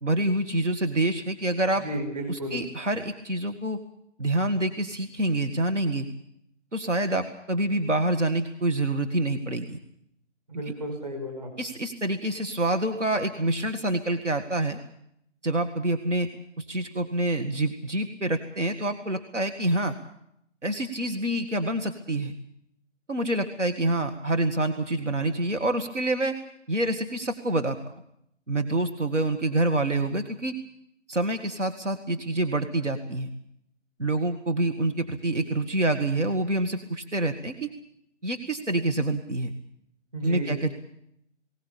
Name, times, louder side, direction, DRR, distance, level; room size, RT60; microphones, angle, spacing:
voice 1, 0.0-1.9 2.3-3.8 4.2-6.1 6.7-9.8 10.5-10.7 11.6-14.8 15.4-16.3 16.6-19.9 20.6-22.4 23.1-26.4 26.7-27.8 28.5-30.5 31.1-33.3 34.0-37.7 38.2-39.5 40.2-40.7, right 1 dB, 70° right, 7 dB, 2.0 m, -27 dB
voice 2, 1.8-2.6 10.5-11.5 40.1-40.6, right 1 dB, 30° right, 4 dB, 5.6 m, -33 dB
21.5 x 18.0 x 8.5 m, 0.73 s
figure-of-eight pair, 180°, 37 cm